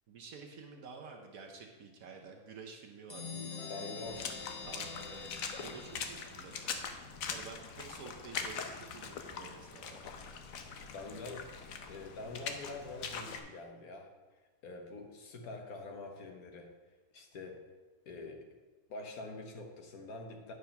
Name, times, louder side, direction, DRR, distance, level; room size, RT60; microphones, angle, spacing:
voice 1, 0.1-4.2 4.6-6.8 7.3-10.1, right 5 dB, 75° right, 2 dB, 1.3 m, -50 dB
sound 1, 3.1-6.6, left 5 dB, 30° left, 0.8 m, -45 dB
voice 2, 3.7-4.3 10.9-11.5 11.9-14.1 14.6-16.7 17.1-17.7 18.0-18.5 18.9-20.5, left 3 dB, 90° left, 3 dB, 1.6 m, -45 dB
Water / Splash splatter, 4.1-13.4, left 6 dB, 75° left, 1.2 m, -42 dB
9.4 x 5.0 x 5.7 m, 1.3 s
omnidirectional pair, 1.5 m